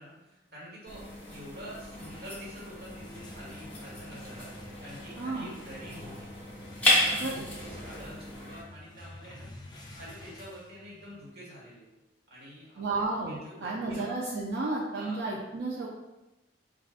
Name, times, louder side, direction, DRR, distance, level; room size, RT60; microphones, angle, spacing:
voice 1, 0.0-6.3 6.8-7.3 7.6-9.5 9.9-11.9 12.3-12.8 13.3-14.1 14.9-15.2, equal, 60° right, -5 dB, 1.3 m, -47 dB
sound 1, 0.9-8.6, left 1 dB, 10° left, 1.0 m, -33 dB
sound 2, 2.7-11.2, left 1 dB, 25° left, 0.5 m, -50 dB
voice 2, 5.2-5.5 7.2-7.4 12.8-15.9, right 3 dB, 80° right, -4 dB, 0.5 m, -32 dB
4.7 x 2.4 x 2.4 m, 0.99 s
head